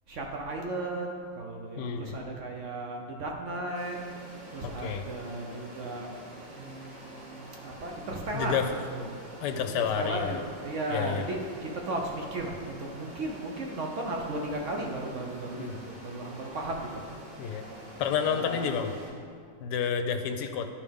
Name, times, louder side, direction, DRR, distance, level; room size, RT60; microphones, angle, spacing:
voice 1, 0.1-4.0 4.5-6.1 6.6-9.1 9.3-17.0 18.2-18.7, right 2 dB, 60° right, 1 dB, 0.8 m, -35 dB
voice 2, 1.8-2.2 4.6-5.0 8.3-8.7 9.4-10.3 10.9-11.2 15.6-15.7 17.4-17.7 18.0-18.9 19.6-20.7, left 7 dB, 75° left, 7 dB, 1.1 m, -30 dB
sound 1, 3.7-19.1, right 1 dB, 85° right, 2.2 m, -47 dB
11.0 x 4.9 x 3.5 m, 2.2 s
omnidirectional pair, 2.0 m